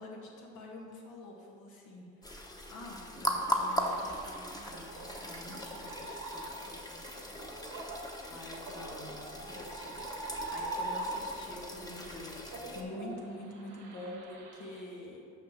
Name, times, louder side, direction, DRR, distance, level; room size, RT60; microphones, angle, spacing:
voice 1, 0.0-7.5 7.8-10.1 10.5-12.4 12.7-15.2, left 1 dB, 80° left, -1 dB, 1.7 m, -47 dB
sound 1, 2.2-12.8, equal, 15° left, 1.0 m, -39 dB
sound 2, 3.8-11.5 11.9-14.8, right 2 dB, 80° right, 1.5 m, -42 dB
6.5 x 5.4 x 6.7 m, 2.4 s
cardioid pair, 90°, 30 cm